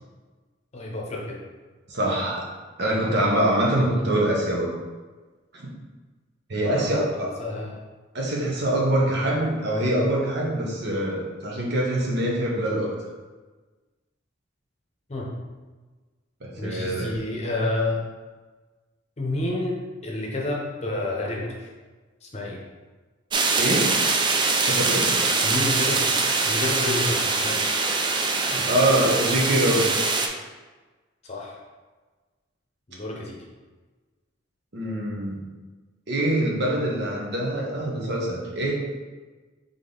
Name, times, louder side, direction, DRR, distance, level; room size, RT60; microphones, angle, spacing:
voice 1, 0.7-1.4 6.5-7.8 15.1-15.3 16.6-18.0 19.2-21.7 22.2-22.6 25.4-26.1 26.4-27.6 31.2-31.6 32.9-33.4, left 2 dB, 35° left, -2 dB, 0.8 m, -29 dB
voice 2, 1.9-2.4 2.8-4.7 5.5-5.6 6.5-7.3 8.1-12.9 16.4-17.1 23.6-24.0 24.6-25.2 28.4-29.9 34.7-35.4 36.1-38.7, right 1 dB, 60° right, -3 dB, 1.0 m, -24 dB
sound 1, 23.3-30.3, right 3 dB, 25° right, 0.3 m, -23 dB
3.7 x 3.6 x 3.9 m, 1.3 s
head